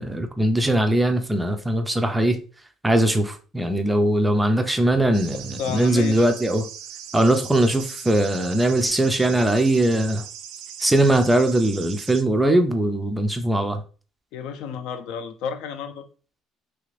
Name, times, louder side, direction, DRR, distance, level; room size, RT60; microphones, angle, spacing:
voice 1, 0.0-2.4 2.8-6.7 7.1-10.2 10.8-13.8, right 1 dB, 5° right, 0.3 m, -20 dB
sound 1, 5.1-12.2, right 9 dB, 85° right, 0.4 m, -39 dB
voice 2, 5.6-6.2 14.3-16.0, left 7 dB, 65° left, 0.4 m, -31 dB
3.2 x 2.5 x 3.1 m
cardioid pair, 175°, 0 cm